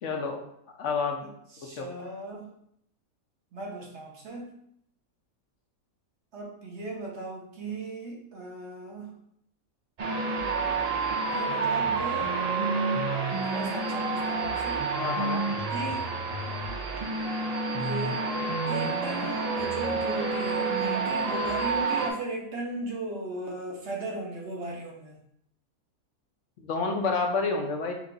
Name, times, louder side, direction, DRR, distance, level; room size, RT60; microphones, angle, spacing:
voice 1, 0.0-0.4 0.8-1.2 1.6-1.9 15.0-15.4 26.6-27.9, left 4 dB, 65° left, 3 dB, 0.9 m, -29 dB
voice 2, 1.2-2.5 3.5-4.6 6.3-9.1 11.3-12.4 13.3-14.9 15.7-16.1 17.8-18.3 18.7-25.1, right 2 dB, 50° right, -2 dB, 1.3 m, -36 dB
sound 1, 10.0-22.1, right 4 dB, 70° right, 0.3 m, -29 dB
4.6 x 2.4 x 3.8 m, 0.71 s
omnidirectional pair, 1.5 m